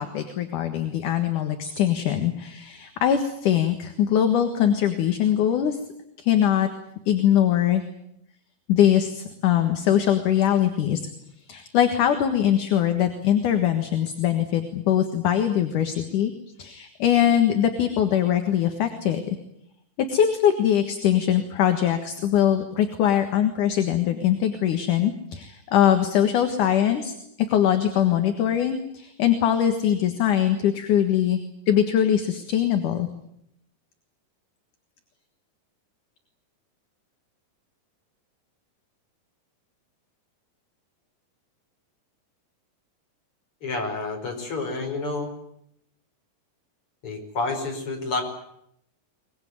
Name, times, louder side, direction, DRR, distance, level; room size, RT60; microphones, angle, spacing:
voice 1, 0.0-5.8 6.2-6.7 7.1-7.8 8.7-11.0 11.5-16.3 16.6-19.4 20.0-27.1 27.5-31.4 31.7-33.1, left 10 dB, 65° left, 7 dB, 3.0 m, -22 dB
voice 2, 43.6-45.3 47.0-48.2, left 3 dB, 40° left, 4 dB, 5.5 m, -29 dB
23.5 x 20.5 x 9.5 m, 0.76 s
omnidirectional pair, 4.0 m